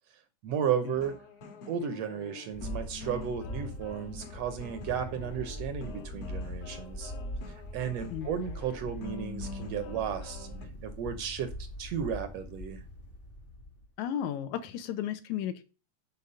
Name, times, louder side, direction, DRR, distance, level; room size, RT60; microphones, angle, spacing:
voice 1, 0.4-1.2 1.7-7.1 7.5-10.5 10.8-11.5 11.8-12.8, right 8 dB, 70° right, 9 dB, 1.6 m, -34 dB
sound 1, 0.9-10.7, left 4 dB, 60° left, 2.3 m, -45 dB
sound 2, 2.5-13.9, equal, 40° left, 0.7 m, -42 dB
voice 2, 14.0-15.6, left 10 dB, 80° left, 11 dB, 2.1 m, -34 dB
7.0 x 4.5 x 5.4 m, 0.33 s
omnidirectional pair, 3.4 m